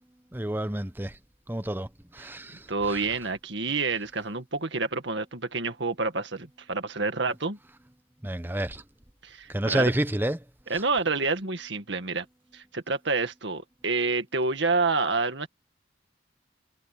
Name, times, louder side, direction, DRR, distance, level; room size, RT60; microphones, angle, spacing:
voice 1, 0.3-1.1 1.5-1.9 2.1-2.6 8.2-8.8 9.5-10.4, right 1 dB, 10° right, 0.9 m, -28 dB
voice 2, 2.7-7.6 9.2-9.9 10.7-12.3 12.5-15.5, right 3 dB, 65° right, 2.0 m, -28 dB
head